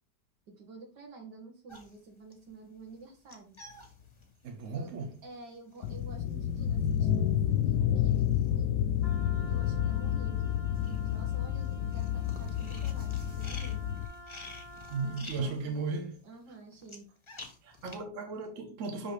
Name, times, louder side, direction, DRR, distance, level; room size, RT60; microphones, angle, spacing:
voice 1, 0.5-3.6 4.7-4.9 5.2-8.8 9.5-10.6 10.9-13.8 15.0-15.8 16.2-17.1, right 3 dB, 70° right, 2.2 m, -50 dB
sound 1, 1.7-9.2 9.5-18.0, left 4 dB, 25° left, 0.7 m, -50 dB
voice 2, 4.4-5.2 14.9-16.1 17.6-19.1, right 4 dB, 50° right, 1.2 m, -35 dB
sound 2, 5.8-14.1, left 10 dB, 75° left, 1.1 m, -30 dB
Wind instrument woodwind instrument, 9.0-15.3, right 1 dB, 20° right, 0.9 m, -50 dB
6.0 x 5.2 x 3.2 m
omnidirectional pair, 1.9 m